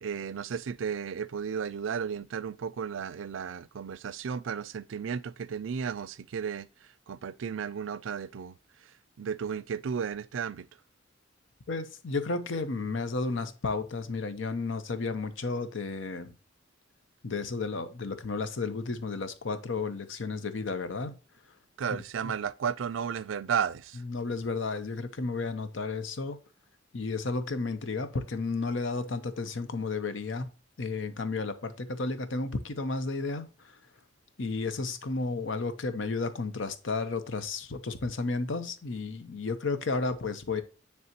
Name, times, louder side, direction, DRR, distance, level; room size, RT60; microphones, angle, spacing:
voice 1, 0.0-6.7 7.1-8.6 9.2-10.7 21.8-24.0, right 7 dB, 80° right, 0.4 m, -33 dB
voice 2, 11.7-16.3 17.2-21.1 21.9-22.0 24.1-26.4 26.9-30.5 30.8-33.5 34.4-40.6, left 3 dB, 75° left, 0.8 m, -32 dB
9.4 x 3.4 x 2.9 m
head